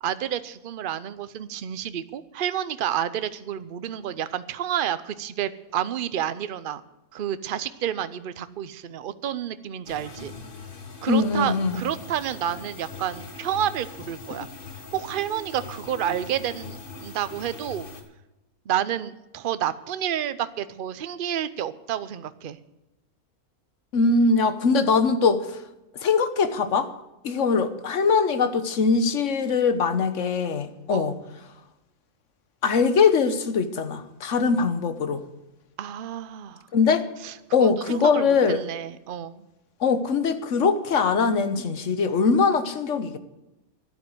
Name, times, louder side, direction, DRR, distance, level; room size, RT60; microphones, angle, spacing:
voice 1, 0.0-6.8 7.1-10.3 11.0-14.5 14.9-17.9 18.7-22.6 30.9-31.1 35.8-36.6 37.2-39.4, right 10 dB, 50° right, 0.8 m, -30 dB
sound 1, 9.9-18.0, left 3 dB, 40° left, 1.6 m, -42 dB
voice 2, 11.1-11.8 23.9-25.6 25.9-26.9 27.2-31.1 32.6-35.2 36.7-37.1 37.5-38.6 39.8-43.2, left 5 dB, 60° left, 1.3 m, -22 dB
sound 2, 11.7-18.0, left 4 dB, 10° left, 5.2 m, -50 dB
12.0 x 9.2 x 7.8 m
omnidirectional pair, 1.5 m